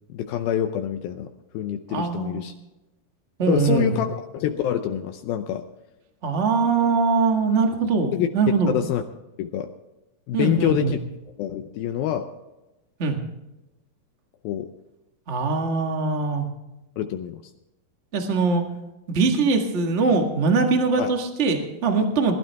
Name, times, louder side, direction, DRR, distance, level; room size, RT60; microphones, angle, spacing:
voice 1, 0.1-2.5 3.5-4.1 4.3-5.6 8.1-9.0 9.4-9.7 10.3-11.0 11.4-12.3 14.4-14.7 17.0-17.4 21.0-21.1, left 10 dB, 80° left, 6 dB, 2.4 m, -26 dB
voice 2, 1.9-2.4 3.4-4.1 6.2-8.7 10.3-11.0 13.0-13.2 15.3-16.5 18.1-18.6 19.1-22.3, right 4 dB, 70° right, 3 dB, 0.6 m, -22 dB
21.5 x 12.0 x 3.5 m, 0.97 s
omnidirectional pair, 4.4 m